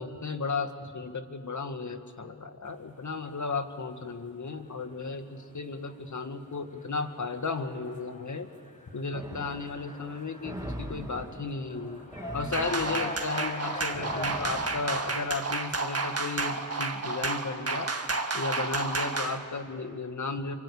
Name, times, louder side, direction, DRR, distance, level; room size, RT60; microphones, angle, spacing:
voice 1, 0.0-8.5 8.9-12.0 12.3-17.9 18.3-20.5, left 4 dB, 50° left, 7 dB, 2.1 m, -34 dB
sound 1, 2.7-14.4, equal, 20° left, 6.3 m, -44 dB
sound 2, 9.1-15.6, right 1 dB, 10° right, 2.7 m, -43 dB
sound 3, 12.5-19.4, right 3 dB, 40° right, 2.0 m, -31 dB
26.5 x 24.5 x 8.6 m, 2.1 s
cardioid pair, 55°, 37 cm